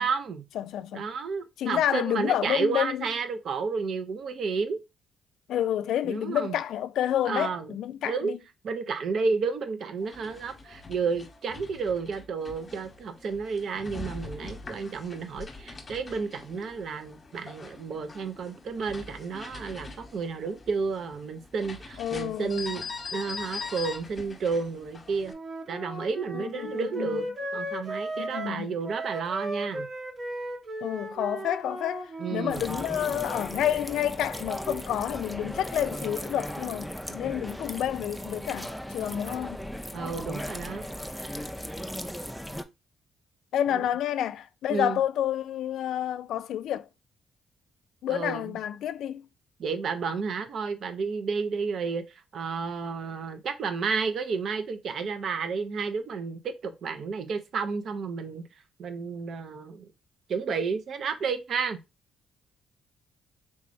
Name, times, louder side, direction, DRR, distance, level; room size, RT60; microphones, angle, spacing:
voice 1, 0.0-0.4 0.9-4.8 6.0-6.6 7.3-7.8 8.0-8.3 8.6-22.8 23.1-25.3 25.7-27.3 27.5-29.9 32.2-32.6 39.9-40.9 43.7-43.8 44.7-45.0 48.1-48.4 49.6-58.4 58.8-59.9 60.3-61.8, right 5 dB, 60° right, 0.6 m, -31 dB
voice 2, 0.6-1.1 1.6-3.0 5.5-8.4 22.0-22.6 26.3-27.2 28.2-28.7 30.8-39.6 43.5-46.9 48.0-49.2, left 11 dB, 80° left, 0.3 m, -29 dB
sound 1, 10.0-25.3, left 4 dB, 30° left, 1.0 m, -43 dB
Wind instrument woodwind instrument, 25.3-32.6, right 1 dB, 35° right, 0.9 m, -36 dB
sound 2, 32.5-42.6, equal, ahead, 0.4 m, -37 dB
3.6 x 3.1 x 2.6 m
cardioid pair, 90°, 0 cm